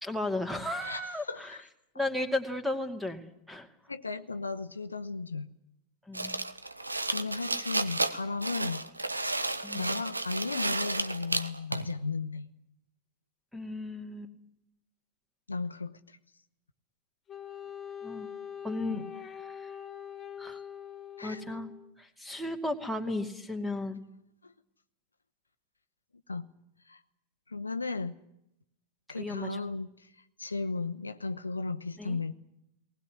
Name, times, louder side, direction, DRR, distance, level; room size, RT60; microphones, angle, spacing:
voice 1, 0.0-1.6 2.0-3.7 6.1-6.3 9.6-10.0 13.5-14.3 18.0-18.3 18.6-19.7 20.4-20.6 21.2-21.7 22.0-24.0 29.2-29.6 32.0-32.2, left 2 dB, ahead, 7 dB, 2.5 m, -35 dB
voice 2, 0.8-1.6 3.9-5.5 7.1-8.8 9.7-12.5 15.5-16.2 18.9-19.1 21.2-21.5 24.4-24.5 26.3-26.5 26.9-27.0 27.5-28.1 29.1-30.1 30.4-32.3, left 4 dB, 80° left, 10 dB, 0.9 m, -35 dB
sound 1, 6.1-11.9, right 2 dB, 80° right, 1.1 m, -32 dB
Wind instrument woodwind instrument, 17.3-21.9, left 8 dB, 20° left, 2.6 m, -43 dB
19.5 x 19.5 x 9.9 m, 0.80 s
figure-of-eight pair, 90°, 0 cm